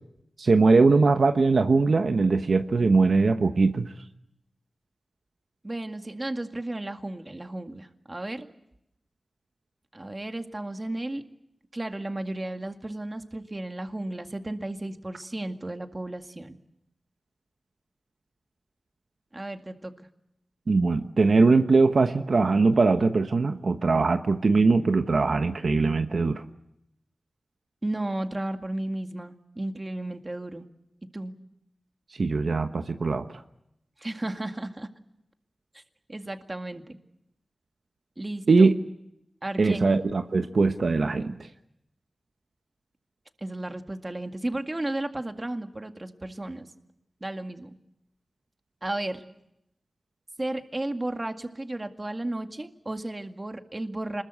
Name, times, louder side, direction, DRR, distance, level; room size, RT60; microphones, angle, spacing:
voice 1, 0.4-3.9 20.7-26.4 32.2-33.3 38.5-38.7 39.6-41.4, right 3 dB, 70° right, 7 dB, 1.1 m, -21 dB
voice 2, 5.6-8.5 9.9-11.3 11.7-16.6 19.3-20.1 27.8-30.7 31.1-31.3 34.0-34.9 35.7-35.8 36.1-37.0 38.2-38.7 39.4-39.9 43.4-46.7 47.2-47.8 48.8-49.2 50.4-54.2, right 1 dB, 30° right, 6 dB, 2.0 m, -34 dB
26.5 x 21.0 x 8.2 m, 0.80 s
wide cardioid pair, 75°, 0 cm